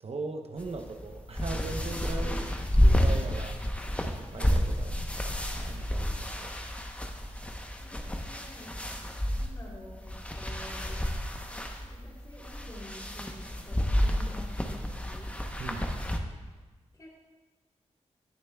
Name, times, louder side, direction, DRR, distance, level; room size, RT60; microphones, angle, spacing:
voice 1, 0.0-2.4 2.8-3.9 4.3-5.0 5.5-6.6 15.6-15.9, right 3 dB, 55° right, 4 dB, 0.7 m, -39 dB
sound 1, 0.6-16.2, equal, 10° left, 0.8 m, -30 dB
voice 2, 7.7-8.7 9.4-11.0 11.8-15.3 16.9-17.1, left 1 dB, 30° left, -3 dB, 3.0 m, -49 dB
17.5 x 6.7 x 2.3 m, 1.3 s
wide cardioid pair, 80°, 12 cm